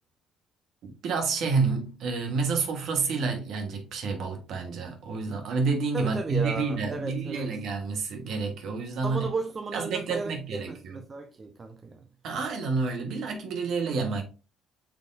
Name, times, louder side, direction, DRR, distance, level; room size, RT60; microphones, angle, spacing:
voice 1, 0.8-9.3 9.7-11.0 12.2-14.2, right 4 dB, 60° right, 1.2 m, -29 dB
voice 2, 5.9-7.5 9.0-12.0, right 3 dB, 30° right, 0.6 m, -34 dB
6.0 x 3.5 x 2.5 m
hypercardioid pair, 55°, 0 cm